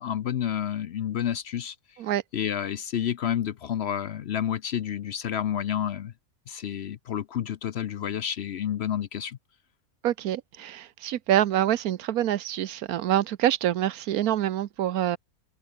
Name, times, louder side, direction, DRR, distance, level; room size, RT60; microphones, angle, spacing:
voice 1, 0.0-1.8 2.3-6.1 6.5-9.4, left 9 dB, 60° left, 0.8 m, -30 dB
voice 2, 10.0-15.2, right 12 dB, 85° right, 1.3 m, -26 dB
omnidirectional pair, 1.5 m